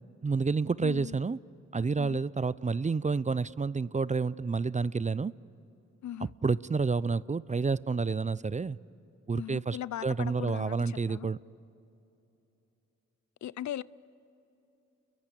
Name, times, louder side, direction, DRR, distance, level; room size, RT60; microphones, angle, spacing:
voice 1, 0.2-1.4 1.7-5.3 6.4-8.8 9.3-11.4, right 4 dB, 25° right, 0.5 m, -29 dB
voice 2, 0.8-1.2 2.0-2.2 6.0-6.3 9.3-11.3 13.4-13.8, left 12 dB, 70° left, 0.6 m, -39 dB
29.5 x 22.5 x 8.4 m
supercardioid pair, 50°, 30 cm